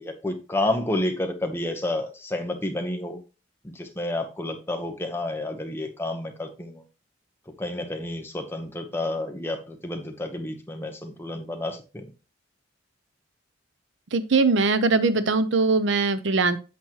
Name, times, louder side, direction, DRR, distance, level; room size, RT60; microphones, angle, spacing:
voice 1, 0.0-3.2 3.6-6.8 7.6-12.1, left 1 dB, 10° left, 4 dB, 1.0 m, -30 dB
voice 2, 14.1-16.6, right 3 dB, 65° right, 13 dB, 0.6 m, -21 dB
8.3 x 6.1 x 3.0 m, 0.31 s
head